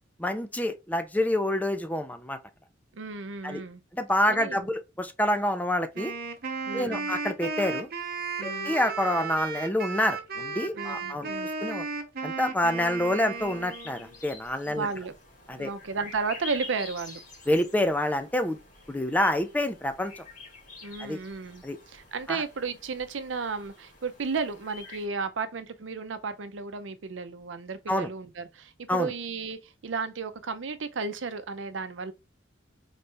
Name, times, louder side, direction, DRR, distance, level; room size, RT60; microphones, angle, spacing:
voice 1, 0.2-2.4 3.4-3.6 3.9-6.1 6.7-7.9 8.4-11.3 11.6-11.8 12.2-14.9 15.5-15.7 17.5-18.6 18.9-20.2 21.0-21.2 21.6-21.8 22.3-22.4 27.9-28.1 28.9-29.1, left 1 dB, 10° left, 0.5 m, -27 dB
voice 2, 2.9-3.8 4.3-4.6 6.7-7.1 8.4-8.7 10.7-11.5 14.7-15.1 15.6-17.2 20.8-32.1, right 4 dB, 85° right, 0.6 m, -34 dB
Wind instrument woodwind instrument, 5.9-14.1, right 4 dB, 55° right, 0.8 m, -34 dB
sound 1, 13.3-25.1, left 2 dB, 45° left, 2.0 m, -47 dB
4.0 x 3.3 x 3.3 m
head